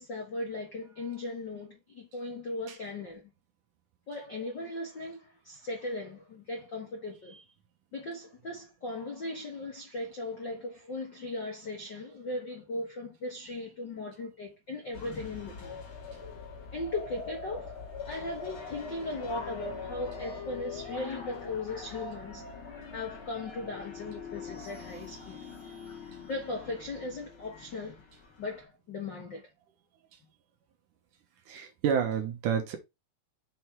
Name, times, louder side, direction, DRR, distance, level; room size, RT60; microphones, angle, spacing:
voice 1, 0.0-3.2 4.1-7.4 7.9-15.8 16.7-17.7 18.1-22.4 22.9-25.4 26.3-28.0 28.4-29.4, left 2 dB, 60° left, 1.1 m, -38 dB
sound 1, 14.9-28.6, left 5 dB, 40° left, 2.4 m, -43 dB
voice 2, 31.5-32.8, right 7 dB, 70° right, 2.4 m, -29 dB
6.7 x 4.0 x 4.5 m
omnidirectional pair, 4.3 m